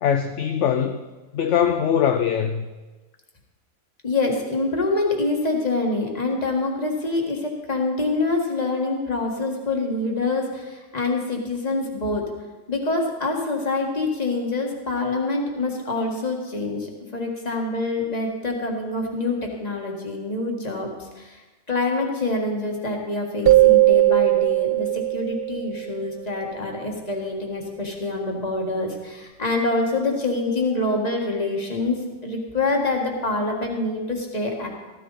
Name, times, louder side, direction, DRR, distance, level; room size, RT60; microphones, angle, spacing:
voice 1, 0.0-1.0 1.3-2.6, left 8 dB, 65° left, 8 dB, 0.8 m, -22 dB
voice 2, 4.0-12.2 12.7-21.4 21.7-34.7, left 2 dB, 30° left, 1 dB, 1.8 m, -26 dB
sound 1, 23.5-26.1, right 18 dB, 70° right, 0.5 m, -18 dB
14.0 x 13.5 x 4.1 m, 1.2 s
omnidirectional pair, 1.5 m